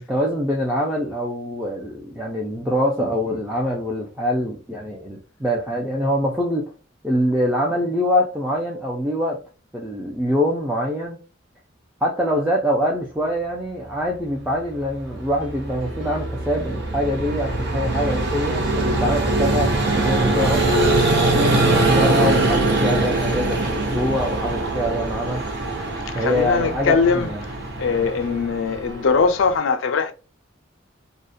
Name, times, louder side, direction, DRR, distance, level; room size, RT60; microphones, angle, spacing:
voice 1, 0.0-6.7 7.0-9.4 9.7-11.2 12.0-20.7 21.2-25.5 26.1-27.4, equal, 5° right, 0.4 m, -24 dB
Vehicle, 14.8-29.5, right 2 dB, 55° right, 0.6 m, -22 dB
Piano, 15.4-29.1, left 2 dB, 75° right, 1.1 m, -41 dB
voice 2, 26.1-27.3 27.8-30.1, left 5 dB, 75° left, 0.4 m, -21 dB
2.3 x 2.1 x 2.6 m
head